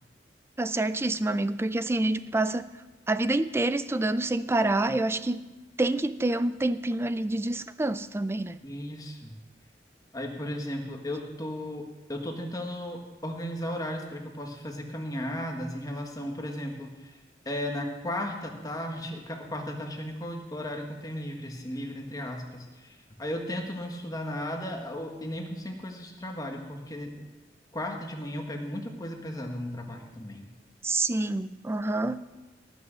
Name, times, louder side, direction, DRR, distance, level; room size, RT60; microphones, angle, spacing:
voice 1, 0.6-2.7 3.1-5.4 5.8-8.6 30.8-32.3, right 2 dB, 15° right, 0.4 m, -27 dB
voice 2, 8.6-9.4 10.1-17.2 17.4-27.2 27.7-30.5, left 1 dB, 20° left, 1.5 m, -35 dB
18.0 x 6.2 x 6.7 m
head